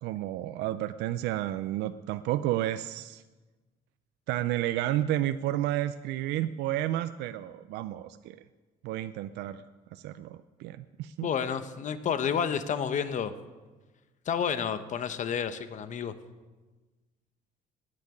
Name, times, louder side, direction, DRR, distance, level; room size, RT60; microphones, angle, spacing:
voice 1, 0.0-3.2 4.3-8.4 8.8-9.7 9.9-11.3, right 13 dB, 85° right, 11 dB, 0.5 m, -31 dB
voice 2, 11.2-13.3 14.3-16.1, left 7 dB, 45° left, 11 dB, 0.9 m, -30 dB
10.5 x 9.9 x 9.6 m, 1.3 s
cardioid pair, 110°, 17 cm